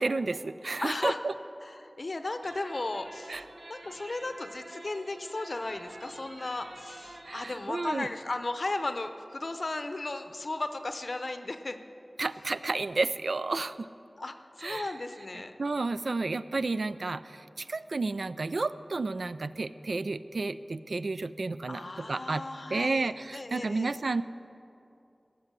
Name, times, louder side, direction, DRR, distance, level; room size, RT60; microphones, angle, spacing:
voice 1, 0.0-1.3 3.3-3.4 7.2-8.1 12.2-13.9 14.6-14.9 15.6-22.4 22.7-24.2, right 3 dB, 80° right, 13 dB, 0.3 m, -31 dB
voice 2, 0.8-1.2 1.6-3.4 3.7-11.8 14.2-15.5 21.7-24.0, left 2 dB, 60° left, 9 dB, 0.7 m, -35 dB
sound 1, 2.4-7.8, right 1 dB, 55° right, 1.0 m, -48 dB
16.5 x 6.7 x 7.4 m, 2.7 s
wide cardioid pair, 65°, 0 cm